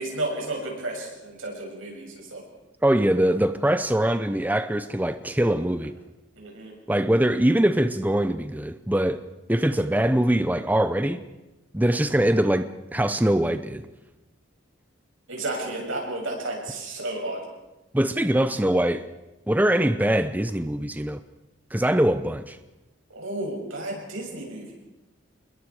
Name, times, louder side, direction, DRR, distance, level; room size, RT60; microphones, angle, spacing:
voice 1, 0.0-2.4 6.4-6.7 15.3-17.4 23.1-24.7, right 2 dB, 90° right, -1 dB, 7.2 m, -32 dB
voice 2, 2.8-5.9 6.9-9.2 9.5-11.2 11.7-13.9 17.9-19.1 19.5-21.2 21.7-22.6, right 1 dB, 10° right, 11 dB, 0.6 m, -22 dB
27.0 x 21.5 x 4.9 m, 1.0 s
head